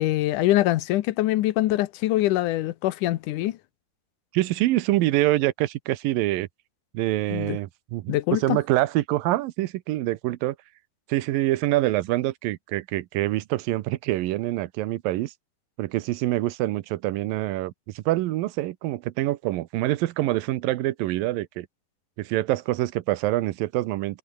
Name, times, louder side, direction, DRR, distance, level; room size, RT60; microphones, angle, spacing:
voice 1, 0.0-3.6 7.3-7.6 8.1-8.6, left 16 dB, 75° left, 2.0 m, -24 dB
voice 2, 4.3-6.5 6.9-10.6 11.1-15.3 15.8-21.7 22.2-24.2, right 16 dB, 75° right, 2.5 m, -25 dB
omnidirectional pair, 4.4 m